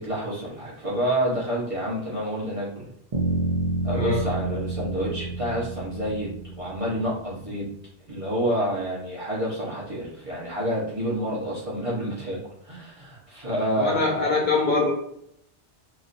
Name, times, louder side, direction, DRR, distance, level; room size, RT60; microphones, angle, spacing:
voice 1, 0.0-2.9 3.8-7.7 8.1-14.2, equal, 35° right, -6 dB, 0.8 m, -28 dB
sound 1, 3.1-7.1, right 3 dB, 55° right, 0.4 m, -29 dB
voice 2, 13.8-14.9, left 3 dB, 50° left, -4 dB, 0.8 m, -23 dB
3.0 x 2.4 x 2.5 m, 0.73 s
omnidirectional pair, 1.2 m